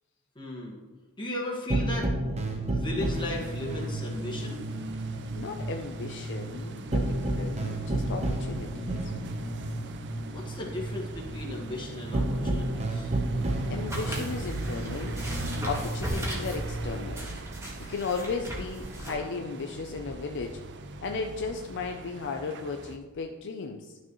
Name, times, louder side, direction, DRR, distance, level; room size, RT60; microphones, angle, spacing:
voice 1, 0.4-0.8 1.2-2.1 2.6-4.6 10.3-13.1, left 1 dB, 20° left, -2 dB, 1.6 m, -36 dB
sound 1, 1.7-16.9, right 1 dB, 30° right, 0.9 m, -32 dB
sound 2, 3.1-23.0, right 3 dB, 55° right, 0.5 m, -41 dB
voice 2, 5.3-9.1 13.7-15.2 15.6-17.3 17.9-20.6 21.0-24.0, left 4 dB, 55° left, 4 dB, 0.5 m, -35 dB
sound 3, 13.9-19.1, equal, 15° right, 1.7 m, -37 dB
11.5 x 6.3 x 3.1 m, 1.3 s
head